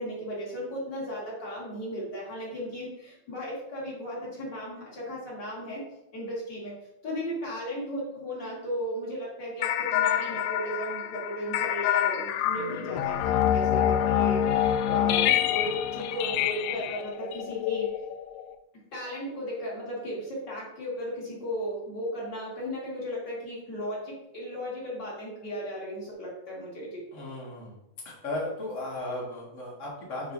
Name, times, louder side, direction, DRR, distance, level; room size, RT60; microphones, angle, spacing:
voice 1, 0.0-5.8 6.1-6.7 7.0-17.9 18.9-27.0, equal, 40° left, -5 dB, 1.8 m, -36 dB
sound 1, 9.6-18.5, left 10 dB, 90° left, 2.5 m, -26 dB
voice 2, 27.1-27.7 28.0-30.3, left 2 dB, 60° left, -6 dB, 0.8 m, -35 dB
8.8 x 4.9 x 2.7 m, 0.86 s
omnidirectional pair, 4.5 m